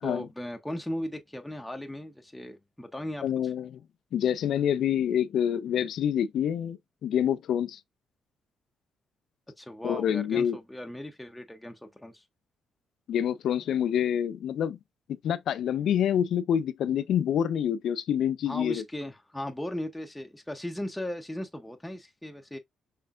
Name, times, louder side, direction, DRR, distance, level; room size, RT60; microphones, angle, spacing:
voice 1, 0.0-3.5 9.6-12.2 18.5-22.6, left 1 dB, 5° left, 0.7 m, -37 dB
voice 2, 3.2-3.7 4.1-7.8 9.8-10.6 13.1-14.8 15.2-18.8, left 9 dB, 70° left, 0.3 m, -27 dB
5.5 x 3.3 x 2.4 m
cardioid pair, 90°, 0 cm